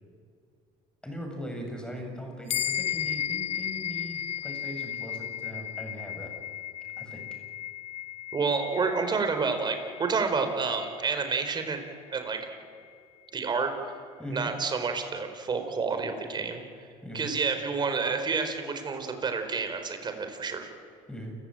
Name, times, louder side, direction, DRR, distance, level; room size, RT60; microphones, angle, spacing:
voice 1, 1.0-6.3 7.0-7.3 14.2-14.5 17.0-17.3 21.1-21.4, equal, 5° left, 3 dB, 7.2 m, -39 dB
sound 1, 2.5-12.2, left 10 dB, 55° left, 0.7 m, -35 dB
voice 2, 8.3-11.9 12.1-12.5 13.3-13.9 14.3-16.6 17.1-20.7, right 4 dB, 35° right, 6 dB, 4.5 m, -29 dB
29.0 x 17.0 x 9.0 m, 2.3 s
cardioid pair, 105°, 13 cm